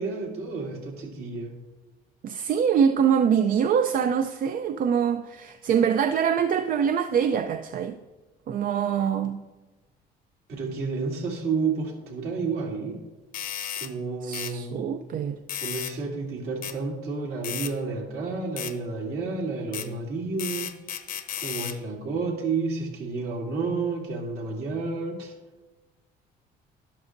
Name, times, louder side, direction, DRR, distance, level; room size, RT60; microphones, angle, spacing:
voice 1, 0.0-1.5 10.5-13.0 13.8-14.8 15.6-20.7 21.4-25.3, right 4 dB, 70° right, 2.7 m, -30 dB
voice 2, 2.2-8.0 8.5-9.4 14.2-15.4, right 7 dB, 55° right, 0.5 m, -24 dB
sound 1, 13.3-13.9 14.3-14.5 15.5-16.0 16.6-16.8 17.4-17.7 18.6-18.7 19.7-19.9 20.4-21.8, left 10 dB, 60° left, 0.8 m, -33 dB
12.5 x 11.0 x 2.6 m
cardioid pair, 110°, 17 cm